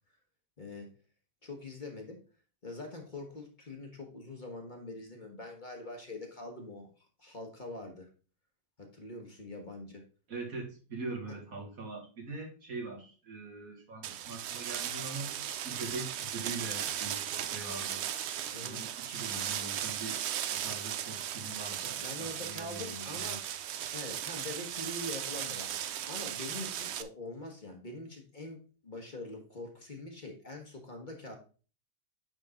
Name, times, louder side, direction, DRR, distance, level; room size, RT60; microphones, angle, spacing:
voice 1, 0.6-0.9 1.4-2.2 2.6-8.1 8.8-10.0 18.5-18.8 21.7-23.4 23.9-25.8 26.1-31.4, left 2 dB, 35° left, 2 dB, 1.3 m, -44 dB
voice 2, 10.3-15.4 15.6-18.0 18.6-20.2 20.5-23.3, right 3 dB, 85° right, 1 dB, 2.5 m, -42 dB
sound 1, 14.0-27.0, right 10 dB, 65° right, 0.7 m, -37 dB
9.1 x 3.7 x 3.7 m, 0.35 s
omnidirectional pair, 1.4 m